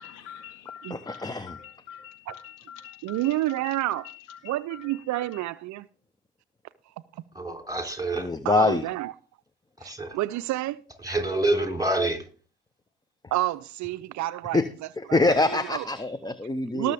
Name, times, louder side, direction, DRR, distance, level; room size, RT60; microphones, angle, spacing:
voice 1, 0.0-5.4, left 9 dB, 70° left, 2.0 m, -45 dB
voice 2, 0.9-1.6 8.1-8.8 14.5-14.7 15.0-16.9, left 2 dB, 10° left, 0.9 m, -24 dB
voice 3, 3.0-4.1 4.4-5.9 7.1-7.2 8.4-9.1 9.8-10.8 13.3-14.6 15.1-15.3 15.7-15.9 16.7-16.9, right 16 dB, 55° right, 0.6 m, -29 dB
voice 4, 7.3-8.3 9.8-10.2 11.0-12.3, right 2 dB, 10° right, 3.3 m, -27 dB
19.5 x 6.8 x 3.5 m
hypercardioid pair, 60°, 35 cm